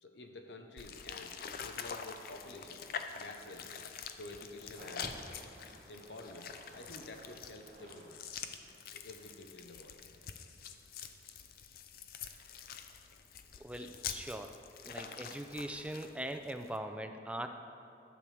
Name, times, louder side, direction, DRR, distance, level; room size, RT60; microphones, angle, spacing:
voice 1, 0.0-2.9 3.1-3.7 4.1-5.1 5.9-8.2 8.9-10.0, left 2 dB, 75° left, 4 dB, 0.8 m, -50 dB
sound 1, 0.8-16.8, left 7 dB, 55° left, 0.4 m, -46 dB
sound 2, 4.7-8.2 8.4-9.3 10.1-10.2, right 1 dB, 45° right, 0.9 m, -54 dB
voice 2, 13.6-14.6 14.8-17.5, right 1 dB, 5° right, 6 dB, 0.4 m, -41 dB
12.0 x 6.9 x 3.3 m, 2.5 s
head